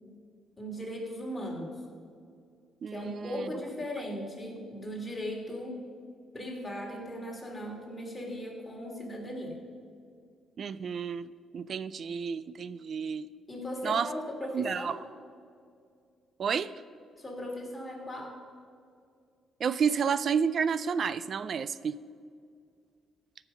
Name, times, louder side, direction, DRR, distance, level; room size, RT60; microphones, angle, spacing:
voice 1, 0.6-1.8 2.9-5.8 6.3-9.6 13.5-15.0 17.2-18.4, equal, 15° left, -1 dB, 3.0 m, -38 dB
voice 2, 2.8-3.5 10.6-13.3 13.8-14.1 14.5-15.0 16.4-16.7 19.6-22.0, right 6 dB, 55° right, 16 dB, 0.3 m, -30 dB
15.0 x 5.9 x 5.5 m, 2.2 s
cardioid pair, 90°, 0 cm